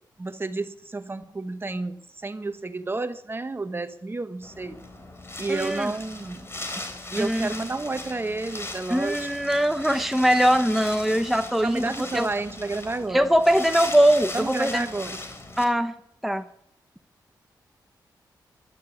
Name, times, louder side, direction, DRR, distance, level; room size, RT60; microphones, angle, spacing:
voice 1, 0.2-4.8 5.4-6.5 7.1-9.3 11.6-13.3 14.3-15.2, right 3 dB, 30° right, 10 dB, 1.3 m, -31 dB
Wind, 4.4-15.6, left 2 dB, 35° left, 3.7 m, -38 dB
voice 2, 5.5-5.9 7.2-7.5 8.9-12.3 13.1-14.9 15.6-15.9 16.2-16.5, equal, ahead, 7 dB, 0.9 m, -22 dB
13.0 x 12.0 x 7.2 m, 0.73 s
cardioid pair, 65°, 8 cm